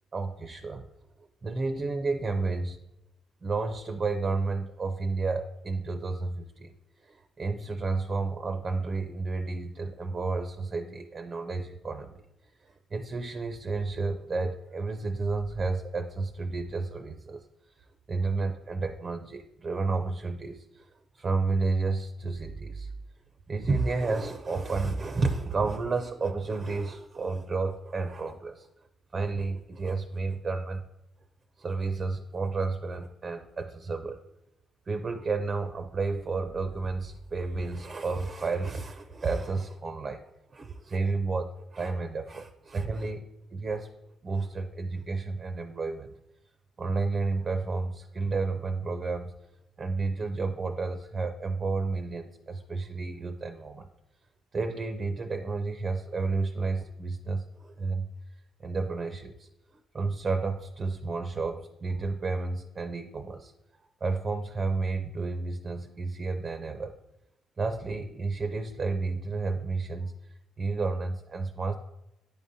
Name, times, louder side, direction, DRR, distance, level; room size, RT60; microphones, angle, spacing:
voice 1, 0.1-0.9 1.4-2.8 3.4-6.7 7.0-12.2 12.6-17.4 18.1-20.9 21.1-22.9 23.5-28.7 29.1-30.8 31.6-34.2 34.9-43.9 44.2-46.1 46.8-49.3 49.8-53.9 54.5-58.1 58.6-59.5 59.9-63.5 64.0-66.9 67.6-70.1 70.6-71.8, right 3 dB, 35° right, 6 dB, 0.4 m, -31 dB
9.8 x 3.6 x 2.7 m, 0.88 s
cardioid pair, 90°, 0 cm